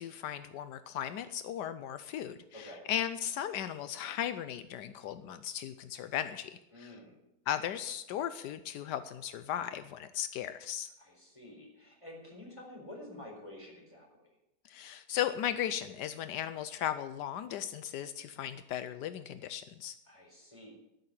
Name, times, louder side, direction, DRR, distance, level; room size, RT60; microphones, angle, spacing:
voice 1, 0.0-6.9 7.5-10.9 14.6-19.9, left 10 dB, 85° left, 11 dB, 1.3 m, -36 dB
voice 2, 2.5-2.9 6.7-7.2 11.0-14.3 20.1-20.7, left 1 dB, 15° left, -1 dB, 4.4 m, -49 dB
13.0 x 6.8 x 9.7 m, 0.86 s
omnidirectional pair, 1.8 m